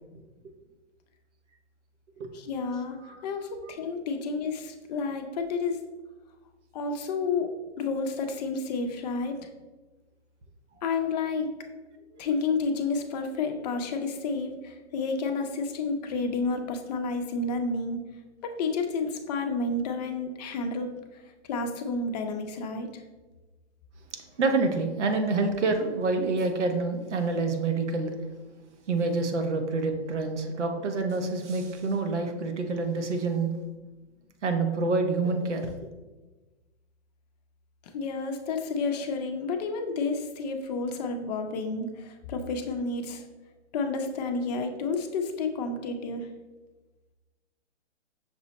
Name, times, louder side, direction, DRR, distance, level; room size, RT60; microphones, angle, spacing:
voice 1, 2.3-5.8 6.7-7.5 7.8-9.5 10.8-11.5 12.2-18.0 18.4-21.2 21.5-23.0 37.9-43.3 43.7-46.3, left 4 dB, 40° left, 6 dB, 0.5 m, -30 dB
voice 2, 24.4-28.1 28.9-33.5 34.4-35.7, right 3 dB, 90° right, 5 dB, 0.8 m, -27 dB
6.0 x 2.0 x 4.0 m, 1.2 s
hypercardioid pair, 135°, 34 cm